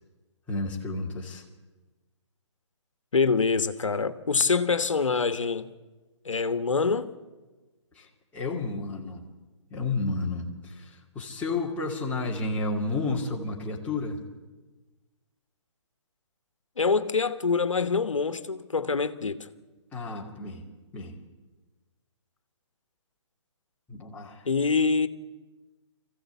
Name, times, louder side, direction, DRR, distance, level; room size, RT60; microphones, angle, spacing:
voice 1, 0.5-1.4 8.0-8.1 8.3-9.3 9.7-14.2 19.9-20.7 20.9-21.2 23.9-24.4, left 3 dB, 10° left, 2.4 m, -31 dB
voice 2, 3.1-5.7 6.2-7.1 16.8-19.5 24.4-25.1, left 4 dB, 85° left, 1.2 m, -25 dB
23.5 x 15.0 x 8.3 m
hypercardioid pair, 150°, 16 cm